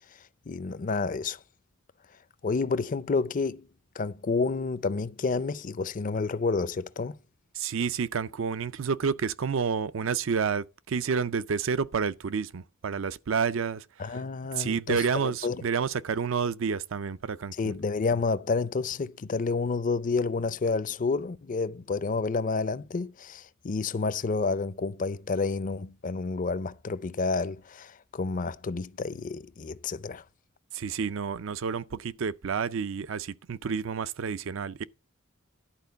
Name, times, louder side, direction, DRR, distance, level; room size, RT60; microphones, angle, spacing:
voice 1, 0.5-1.4 2.4-3.7 4.0-7.2 14.0-15.6 17.6-30.2, left 4 dB, 40° left, 0.5 m, -29 dB
voice 2, 7.6-13.8 14.6-17.7 30.7-34.8, right 6 dB, 65° right, 0.5 m, -29 dB
11.5 x 4.5 x 6.7 m
head